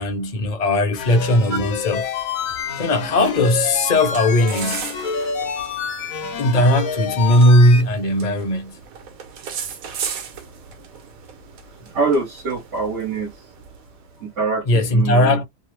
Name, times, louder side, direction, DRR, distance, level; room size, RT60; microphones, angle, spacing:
voice 1, 0.0-2.1 2.8-4.8 6.4-8.8 14.6-15.4, left 1 dB, 35° left, 0.9 m, -17 dB
sound 1, 1.0-7.8, left 6 dB, 75° left, 1.3 m, -28 dB
sound 2, 2.4-14.2, right 7 dB, 90° right, 1.3 m, -37 dB
voice 2, 11.9-13.3 14.2-15.4, right 3 dB, 60° right, 1.4 m, -24 dB
3.2 x 2.0 x 3.2 m
omnidirectional pair, 1.4 m